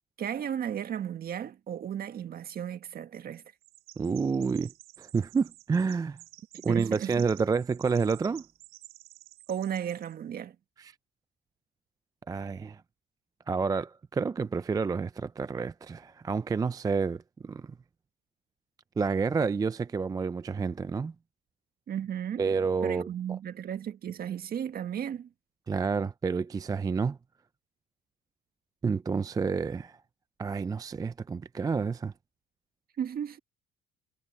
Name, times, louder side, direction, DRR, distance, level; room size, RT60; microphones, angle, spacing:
voice 1, 0.2-3.4 6.5-7.3 9.5-10.6 21.9-22.5 22.8-25.3 33.0-33.4, right 9 dB, 50° right, 1.7 m, -34 dB
Chirp tweet, 3.6-10.1, right 18 dB, 85° right, 2.9 m, -52 dB
voice 2, 4.0-4.7 5.0-6.2 6.6-8.4 10.8-10.9 12.3-12.8 13.5-17.7 19.0-21.1 22.4-23.1 25.7-27.2 28.8-30.0 30.4-32.1, right 5 dB, 20° right, 0.4 m, -29 dB
cardioid pair, 105°, 20 cm